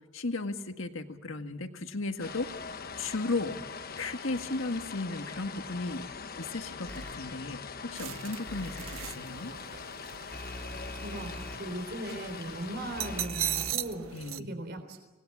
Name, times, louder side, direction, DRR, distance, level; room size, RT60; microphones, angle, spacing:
voice 1, 0.1-2.6 3.0-3.6 4.0-6.0 6.4-9.5 14.1-14.5, left 3 dB, 70° left, 6 dB, 1.8 m, -35 dB
sound 1, 2.2-13.3, left 5 dB, 45° left, 1.2 m, -42 dB
sound 2, 6.9-7.1 8.5-9.1 10.3-11.6 13.0-13.7, left 1 dB, 10° left, 2.6 m, -42 dB
sound 3, 8.0-14.4, right 11 dB, 75° right, 0.9 m, -39 dB
voice 2, 10.9-15.0, right 1 dB, 55° right, 6 dB, 3.7 m, -39 dB
26.0 x 19.5 x 8.6 m, 1.1 s
head